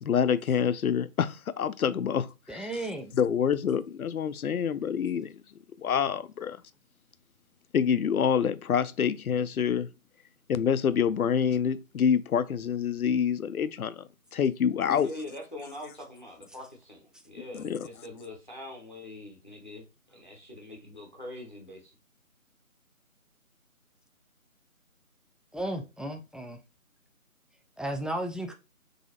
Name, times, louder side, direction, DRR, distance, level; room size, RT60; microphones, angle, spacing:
voice 1, 0.0-2.7 3.1-5.3 5.8-6.6 7.7-9.9 10.5-14.0 14.3-15.1 17.5-17.9, left 7 dB, 80° left, 0.5 m, -27 dB
voice 2, 2.5-3.1 25.5-26.6 27.8-28.5, right 1 dB, ahead, 0.3 m, -34 dB
voice 3, 14.9-19.8 20.1-21.9, left 1 dB, 35° left, 0.7 m, -43 dB
4.0 x 2.8 x 2.7 m
figure-of-eight pair, 175°, 43 cm